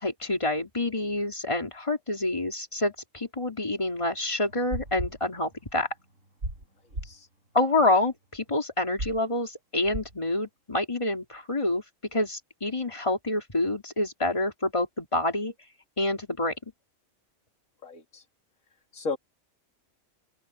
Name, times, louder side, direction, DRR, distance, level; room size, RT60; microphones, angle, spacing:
voice 1, 0.0-5.9 7.5-11.8 12.1-15.5 16.0-16.5, left 2 dB, 25° left, 3.1 m, -27 dB
sound 1, 4.5-5.9 6.2-6.7 6.9-7.2 9.0-9.2 9.9-10.2, right 1 dB, 75° right, 8.1 m, -36 dB
voice 2, 17.8-18.2 18.9-19.2, left 4 dB, 90° left, 2.4 m, -34 dB
open air
omnidirectional pair, 1.4 m